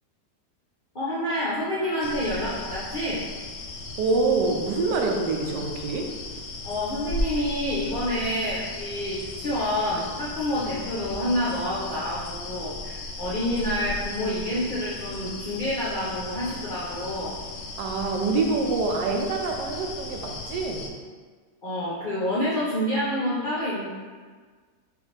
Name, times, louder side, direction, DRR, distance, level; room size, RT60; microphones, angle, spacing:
voice 1, 0.9-3.3 6.6-17.4 21.6-23.9, left 1 dB, 55° left, -8 dB, 0.5 m, -28 dB
sound 1, 2.0-20.9, left 2 dB, 70° left, 1.0 m, -36 dB
voice 2, 4.0-6.1 17.8-20.9, right 3 dB, 80° right, 2 dB, 1.2 m, -25 dB
5.3 x 2.5 x 3.2 m, 1.5 s
omnidirectional pair, 1.8 m